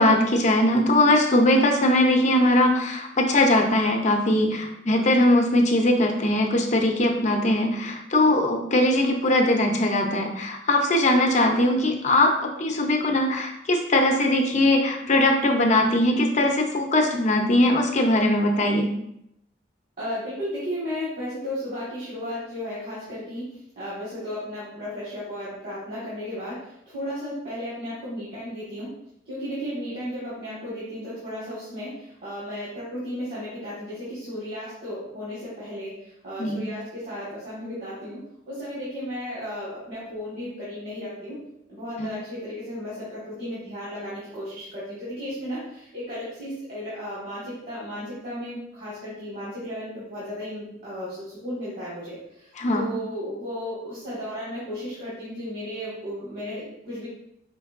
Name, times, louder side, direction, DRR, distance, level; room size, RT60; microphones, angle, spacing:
voice 1, 0.0-12.3 12.6-18.9 36.4-36.6 42.0-42.1 52.6-52.9, left 1 dB, 40° left, 2 dB, 0.6 m, -20 dB
voice 2, 20.0-23.5 23.7-26.6 26.9-28.9 29.3-35.9 36.2-38.2 38.5-41.3 41.7-52.4 52.7-57.1, equal, 55° right, -10 dB, 1.6 m, -34 dB
5.2 x 3.4 x 2.5 m, 0.79 s
head